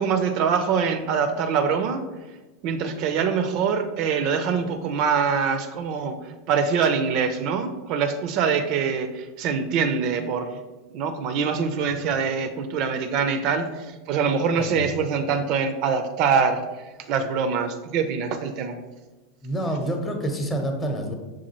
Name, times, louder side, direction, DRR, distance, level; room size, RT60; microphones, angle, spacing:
voice 1, 0.0-2.0 2.6-6.1 6.5-10.6 10.9-16.6 17.1-18.8, right 6 dB, 50° right, 8 dB, 0.4 m, -24 dB
voice 2, 19.4-21.1, right 1 dB, 20° left, 3 dB, 0.7 m, -28 dB
5.9 x 2.4 x 2.9 m, 1.1 s
hypercardioid pair, 90°, 0 cm